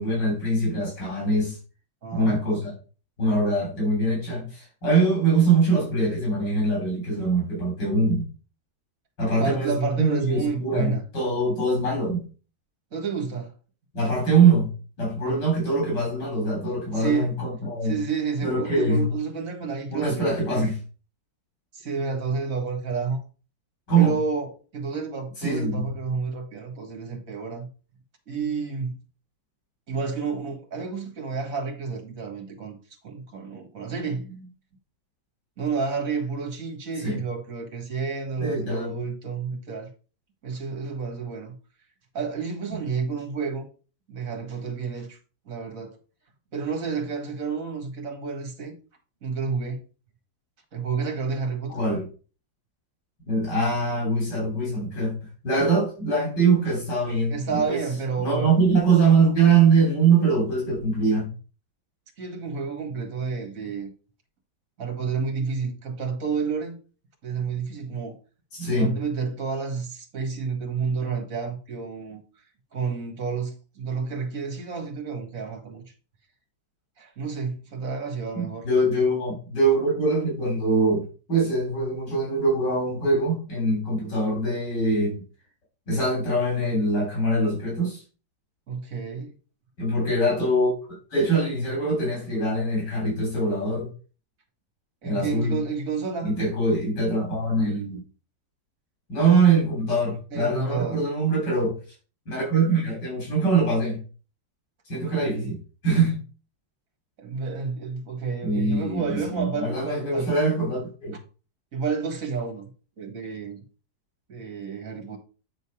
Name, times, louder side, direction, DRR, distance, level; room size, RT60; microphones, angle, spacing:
voice 1, 0.0-1.6 2.1-2.7 3.2-8.3 9.2-12.3 13.9-14.7 15.0-18.0 18.4-19.1 19.9-20.8 23.9-24.1 25.4-25.9 34.0-34.5 37.0-37.2 38.4-39.0 42.7-42.8 51.7-52.1 53.3-55.2 55.4-57.8 58.2-61.3 68.5-68.9 78.3-81.0 81.3-85.2 85.9-88.0 89.8-90.7 91.1-93.9 95.0-95.6 96.2-98.0 99.1-101.8 102.3-104.0 104.9-106.2 108.4-111.2, right 3 dB, 85° left, 4.0 m, -23 dB
voice 2, 2.0-2.4 9.4-11.0 12.9-13.5 15.2-15.5 16.9-17.3 17.8-20.7 21.7-23.2 24.0-27.7 28.3-29.0 29.9-32.8 33.0-34.2 35.6-39.9 40.4-41.5 42.1-43.7 44.1-45.2 45.5-46.0 46.5-48.7 49.2-49.8 50.7-51.8 57.3-58.6 62.2-63.9 64.8-66.8 67.2-68.2 68.8-72.2 72.7-75.8 77.0-78.7 88.7-89.3 95.0-96.3 100.3-101.1 104.9-105.5 107.2-110.3 111.7-112.7 113.0-113.6 114.3-115.2, right 5 dB, 50° right, 2.2 m, -30 dB
9.0 x 4.0 x 5.0 m
omnidirectional pair, 1.8 m